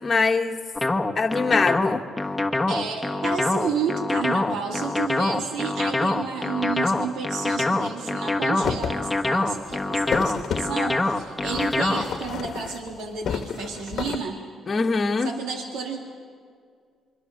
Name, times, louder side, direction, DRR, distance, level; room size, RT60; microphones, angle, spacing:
voice 1, 0.0-0.6 1.1-2.0 14.7-15.3, left 4 dB, 35° left, 2 dB, 1.4 m, -22 dB
sound 1, 0.8-12.2, left 2 dB, 10° left, 1.4 m, -24 dB
voice 2, 2.7-14.4 15.2-16.0, right 5 dB, 85° right, 2 dB, 2.2 m, -31 dB
sound 2, 8.6-9.0 9.4-10.7 11.4-13.0 13.2-14.2, left 7 dB, 65° left, 1.2 m, -31 dB
26.0 x 23.0 x 6.5 m, 2.1 s
cardioid pair, 90°, 0 cm